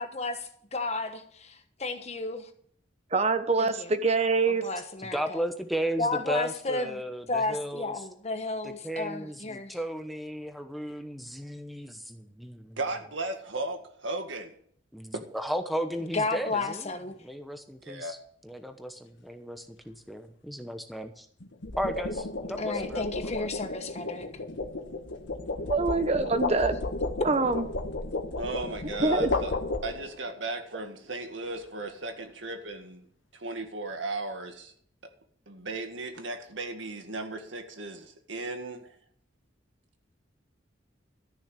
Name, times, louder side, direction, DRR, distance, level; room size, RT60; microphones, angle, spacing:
voice 1, 0.0-2.5 3.6-3.9 4.4-5.4 6.0-7.0 7.3-9.8 16.1-17.2 22.6-24.3, left 3 dB, 35° left, 1.2 m, -32 dB
voice 2, 3.1-4.7 25.7-26.8 27.2-27.6 29.0-29.3, right 3 dB, 35° right, 1.0 m, -25 dB
voice 3, 5.0-8.0 8.6-12.8 14.9-16.9 17.2-18.2 18.4-21.3 21.8-23.5, equal, ahead, 0.9 m, -35 dB
voice 4, 12.8-14.5 15.1-15.2 17.8-18.2 28.4-29.5 29.8-33.1 33.3-34.7 35.5-39.0, right 2 dB, 85° right, 1.9 m, -36 dB
sound 1, 15.9-16.2 21.4-30.3, left 2 dB, 80° left, 1.5 m, -33 dB
13.5 x 6.4 x 8.2 m
head